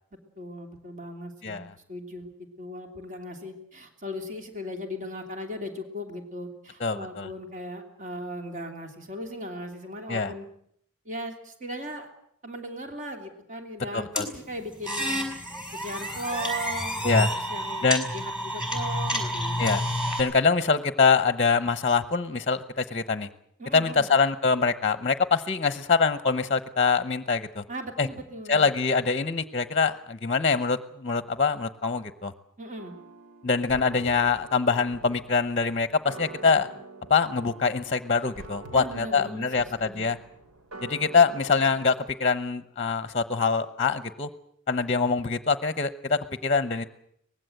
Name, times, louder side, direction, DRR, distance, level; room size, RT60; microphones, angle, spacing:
voice 1, 0.4-10.5 11.0-12.1 12.4-15.2 15.7-19.7 23.6-24.1 27.7-28.7 32.6-33.0 38.7-40.1, equal, 35° right, 4 dB, 2.9 m, -38 dB
voice 2, 6.8-7.3 10.1-10.3 13.9-14.3 17.0-17.3 17.8-18.1 19.6-19.8 20.2-23.3 23.7-27.6 28.0-28.1 28.5-32.3 33.4-36.7 37.1-40.2 40.8-41.9 42.2-44.3 44.7-46.9, left 5 dB, 30° left, 11 dB, 0.9 m, -24 dB
sound 1, 14.2-20.2, equal, 5° right, 5.5 m, -29 dB
sound 2, 32.8-41.9, right 3 dB, 90° right, 3.0 m, -46 dB
24.0 x 19.5 x 7.9 m, 0.71 s
head